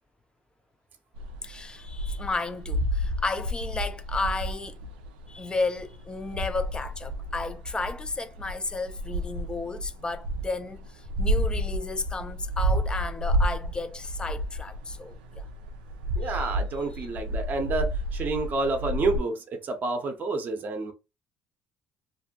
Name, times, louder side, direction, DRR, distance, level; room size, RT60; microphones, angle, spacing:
sound 1, 1.2-19.2, equal, 85° right, 0.4 m, -31 dB
voice 1, 1.4-4.8 5.3-15.4 16.2-16.3 17.0-17.1, left 3 dB, 20° left, 0.5 m, -33 dB
voice 2, 16.2-20.9, right 3 dB, 45° right, 0.7 m, -29 dB
2.5 x 2.1 x 2.8 m
hypercardioid pair, 65°, 4 cm